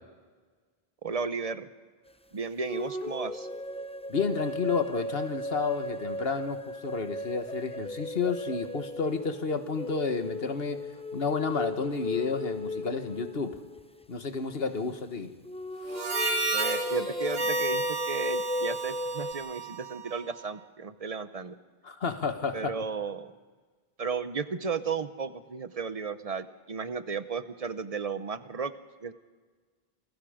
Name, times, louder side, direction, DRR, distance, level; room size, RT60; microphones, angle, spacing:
voice 1, 1.0-1.7 2.3-3.5 16.5-21.6 22.5-23.3 24.0-28.7 29.0-29.1, right 5 dB, 40° right, 12 dB, 1.0 m, -34 dB
sound 1, 2.7-14.0 15.4-19.3, left 1 dB, 10° left, 0.4 m, -36 dB
voice 2, 4.1-10.8 11.1-13.6 14.1-15.3 21.8-22.7, left 5 dB, 70° left, 8 dB, 1.6 m, -31 dB
Harmonica, 15.9-20.5, right 3 dB, 70° right, 1.9 m, -33 dB
28.5 x 21.0 x 5.1 m, 1.5 s
omnidirectional pair, 1.0 m